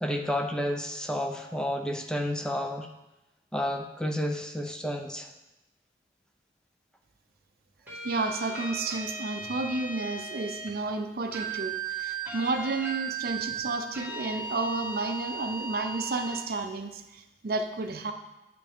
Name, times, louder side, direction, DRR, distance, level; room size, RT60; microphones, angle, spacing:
voice 1, 0.0-2.9 3.5-5.3, equal, 5° left, 3 dB, 0.5 m, -31 dB
sound 1, 7.9-10.7 11.3-16.5, right 4 dB, 10° right, 2.4 m, -36 dB
voice 2, 8.0-18.1, right 3 dB, 60° right, 6 dB, 0.6 m, -31 dB
9.2 x 5.9 x 3.6 m, 0.96 s
head